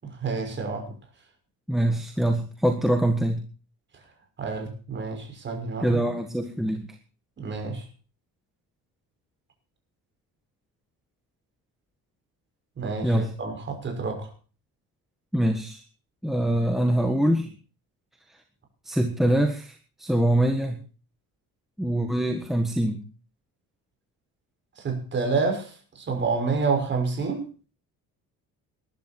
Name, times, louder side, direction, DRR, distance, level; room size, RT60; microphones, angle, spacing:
voice 1, 0.0-0.9 4.4-6.0 7.4-7.9 12.8-14.3 24.8-27.5, right 4 dB, 30° right, 3 dB, 6.1 m, -28 dB
voice 2, 1.7-3.4 5.8-6.9 13.0-13.3 15.3-15.8 16.2-17.5 18.8-20.8 21.8-23.0, right 1 dB, ahead, 4 dB, 1.5 m, -24 dB
21.0 x 12.0 x 4.5 m, 0.37 s
cardioid pair, 175°, 35 cm